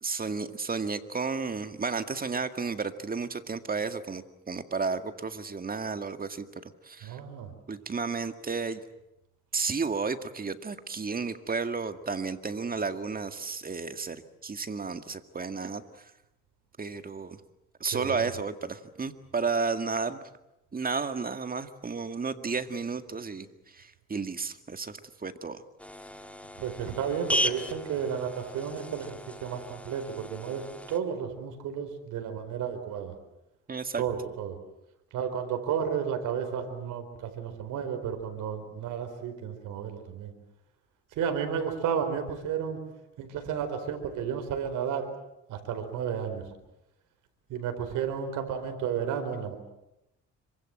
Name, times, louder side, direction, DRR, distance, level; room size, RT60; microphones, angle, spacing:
voice 1, 0.0-7.2 7.7-8.8 9.5-15.8 16.8-17.4 17.8-20.2 20.7-23.5 23.7-25.6 33.7-34.0, right 4 dB, 30° right, 9 dB, 2.0 m, -32 dB
voice 2, 7.0-7.5 17.9-18.3 26.6-30.6 30.9-33.1 34.0-34.6 35.1-40.3 41.2-42.8 43.2-45.1 45.5-46.4 47.5-49.6, right 7 dB, 90° right, 6 dB, 4.4 m, -32 dB
sound 1, 25.8-31.0, left 1 dB, 5° left, 1.9 m, -35 dB
26.0 x 24.0 x 7.8 m, 0.89 s
cardioid pair, 90°, 30 cm